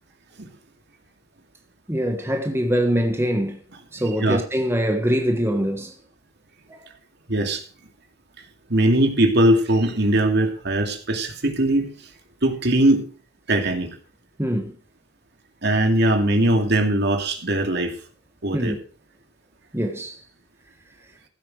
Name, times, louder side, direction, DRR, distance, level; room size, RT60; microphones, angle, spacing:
voice 1, 1.9-3.6 3.9-5.9 6.7-6.8 14.4-14.7 18.5-18.8 19.7-20.2, equal, 15° right, 1.4 m, -23 dB
voice 2, 7.3-7.6 8.7-11.9 12.4-13.0 13.5-13.9 15.6-18.0 18.4-18.7, right 1 dB, 60° right, 2.5 m, -20 dB
15.5 x 8.8 x 4.9 m
head